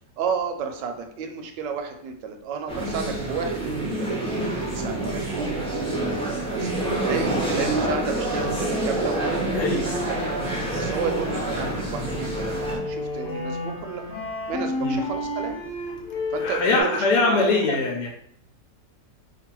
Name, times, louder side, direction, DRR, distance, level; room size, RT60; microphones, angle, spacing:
voice 1, 0.2-4.3 4.7-5.5 6.5-10.3 10.7-14.0 14.5-15.6 16.3-17.8, right 5 dB, 80° right, 5 dB, 1.2 m, -32 dB
sound 1, 2.7-12.8, right 2 dB, 5° left, 0.4 m, -27 dB
sound 2, 7.0-16.8, left 1 dB, 30° left, 1.3 m, -33 dB
voice 2, 9.5-9.9 14.8-15.0 16.4-18.1, left 3 dB, 70° left, 1 dB, 1.2 m, -22 dB
3.0 x 2.5 x 4.4 m, 0.66 s
omnidirectional pair, 1.9 m